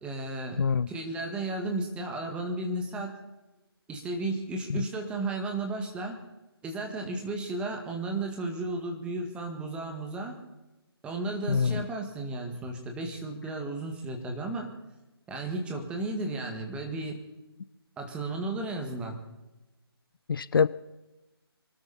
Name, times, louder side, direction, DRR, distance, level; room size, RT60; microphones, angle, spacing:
voice 1, 0.0-0.6 0.9-3.2 3.9-6.2 6.6-10.4 11.0-14.7 15.3-17.2 18.0-19.2, right 2 dB, 10° right, 3 dB, 1.8 m, -34 dB
voice 2, 0.6-0.9 4.7-4.8 11.5-11.8 20.3-20.7, left 6 dB, 60° left, 17 dB, 0.5 m, -25 dB
24.0 x 12.5 x 4.2 m, 1.0 s
figure-of-eight pair, 150°, 13 cm